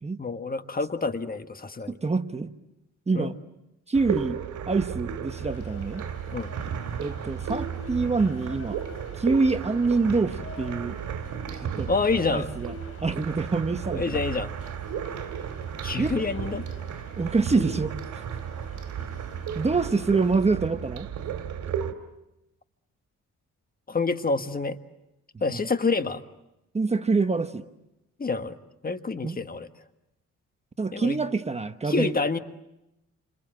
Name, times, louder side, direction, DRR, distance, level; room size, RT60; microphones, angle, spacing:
voice 1, 0.2-1.9 3.1-3.3 6.3-6.5 11.9-12.5 13.9-14.5 15.8-16.6 23.9-24.8 25.4-26.2 28.2-28.6 28.8-29.7 30.9-31.2 31.9-32.4, left 4 dB, 30° left, 1.4 m, -27 dB
voice 2, 1.9-2.5 3.1-3.4 3.9-4.4 4.7-6.0 7.0-8.8 9.2-11.0 11.5-11.9 12.3-12.7 13.0-14.2 16.0-16.2 17.2-18.3 19.5-21.1 25.5-25.6 26.7-27.6 29.2-29.4 30.8-32.2, right 4 dB, 20° right, 1.1 m, -26 dB
sound 1, 3.9-21.9, right 8 dB, 75° right, 2.6 m, -34 dB
sound 2, 5.4-20.3, left 5 dB, 50° left, 3.8 m, -51 dB
29.0 x 26.5 x 7.7 m
cardioid pair, 105°, 30 cm